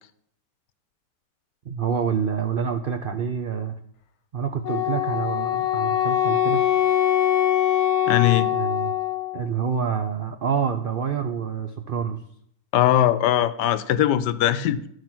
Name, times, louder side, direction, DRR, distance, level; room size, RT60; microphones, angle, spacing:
voice 1, 1.7-3.8 4.3-6.6 8.5-8.9 9.3-12.2, right 7 dB, 70° right, 6 dB, 0.5 m, -27 dB
Wind instrument woodwind instrument, 4.6-9.4, left 11 dB, 65° left, 1.3 m, -22 dB
voice 2, 8.1-8.5 12.7-14.8, left 12 dB, 90° left, 14 dB, 1.2 m, -20 dB
12.5 x 4.9 x 6.0 m, 0.68 s
omnidirectional pair, 1.8 m